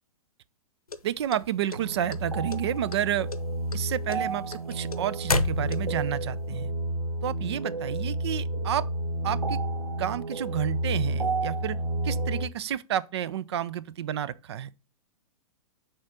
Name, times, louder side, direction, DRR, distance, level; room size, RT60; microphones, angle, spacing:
sound 1, 0.9-2.2 2.5-3.0 3.3-6.1, left 3 dB, 80° left, 0.7 m, -30 dB
voice 1, 1.0-3.3 3.7-6.7 7.2-8.9 9.2-9.6 10.0-11.8 12.0-14.7, right 11 dB, 50° right, 0.4 m, -30 dB
sound 2, 1.7-12.5, right 2 dB, 85° right, 0.9 m, -31 dB
6.3 x 3.8 x 5.7 m
figure-of-eight pair, 110°, 18 cm